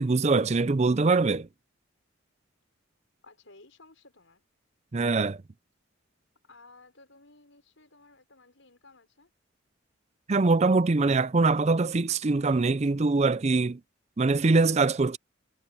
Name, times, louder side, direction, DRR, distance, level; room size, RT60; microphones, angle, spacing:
voice 1, 0.0-1.5 4.9-5.4 10.3-13.8 14.2-15.2, right 3 dB, 35° right, 0.5 m, -23 dB
voice 2, 3.2-4.4 6.4-9.3, left 3 dB, 70° left, 5.6 m, -56 dB
head